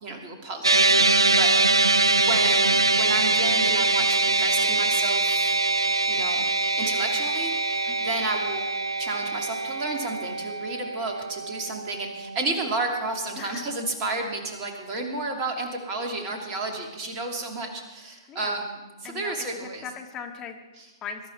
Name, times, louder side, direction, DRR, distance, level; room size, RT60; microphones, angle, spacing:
voice 1, 0.0-1.8 2.2-5.6 6.1-6.5 6.8-8.7 9.0-19.8 20.8-20.9, right 2 dB, 25° right, 2 dB, 2.7 m, -32 dB
sound 1, 0.6-13.1, right 3 dB, 85° right, 0.4 m, -23 dB
voice 2, 18.3-18.7 19.0-20.6 21.0-21.3, left 7 dB, 20° left, 3 dB, 1.8 m, -39 dB
22.0 x 11.5 x 4.6 m, 1.1 s
figure-of-eight pair, 120°, 2 cm